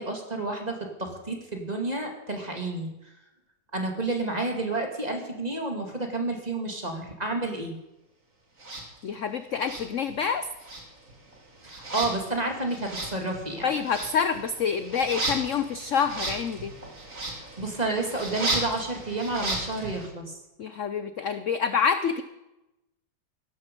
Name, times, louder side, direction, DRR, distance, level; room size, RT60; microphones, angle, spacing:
voice 1, 0.0-2.9 3.7-7.8 11.6-13.7 17.6-20.4, right 2 dB, 20° right, 3 dB, 2.3 m, -30 dB
sound 1, 8.6-8.9 9.6-10.4 10.6-20.1, right 2 dB, 40° right, 3.1 m, -35 dB
voice 2, 9.0-10.5 13.6-16.7 20.6-22.2, left 6 dB, 65° left, 11 dB, 0.7 m, -27 dB
17.0 x 13.0 x 5.3 m, 0.93 s
omnidirectional pair, 2.1 m